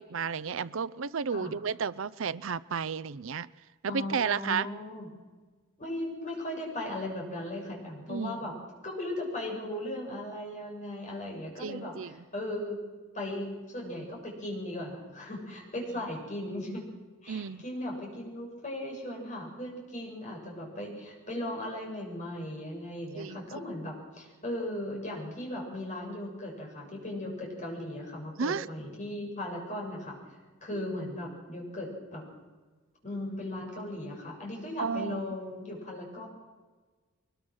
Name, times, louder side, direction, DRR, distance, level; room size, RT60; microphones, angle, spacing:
voice 1, 0.0-3.5 3.8-4.7 8.1-8.3 11.6-12.1 17.3-17.6 23.2-23.4 28.4-28.7 30.7-30.9 34.8-35.2, right 6 dB, 65° right, 18 dB, 0.6 m, -32 dB
voice 2, 3.9-5.1 5.8-8.5 8.8-12.8 13.1-16.9 17.2-30.2 30.6-32.2 33.0-36.3, left 1 dB, 35° left, -1 dB, 7.0 m, -37 dB
23.0 x 21.5 x 6.3 m, 1.3 s
head